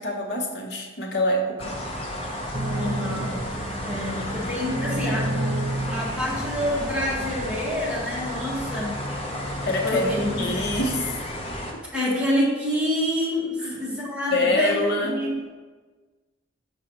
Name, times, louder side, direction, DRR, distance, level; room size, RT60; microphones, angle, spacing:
voice 1, 0.0-1.8 9.7-11.1 11.7-11.8 13.6-13.8 14.3-15.2, left 2 dB, 55° left, 1 dB, 0.9 m, -25 dB
sound 1, 1.6-11.7, left 1 dB, 30° left, 0.6 m, -32 dB
sound 2, 2.5-7.3 8.0-8.1 9.3-9.9 10.5-10.9, right 1 dB, 45° right, 0.5 m, -31 dB
voice 2, 2.7-5.3 5.9-8.9 9.8-10.5 11.9-15.3, left 1 dB, 5° right, -8 dB, 1.4 m, -27 dB
6.5 x 5.1 x 2.9 m, 1.4 s
head